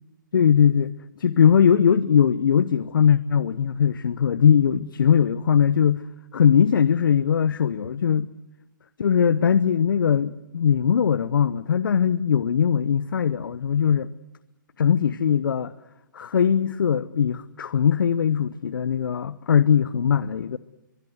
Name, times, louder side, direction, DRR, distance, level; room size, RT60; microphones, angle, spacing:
voice 1, 0.3-6.0 6.3-8.3 9.0-14.1 14.8-15.7 16.1-20.6, left 8 dB, 80° left, 0.8 m, -20 dB
23.5 x 22.0 x 8.0 m
hypercardioid pair, 140°, 11 cm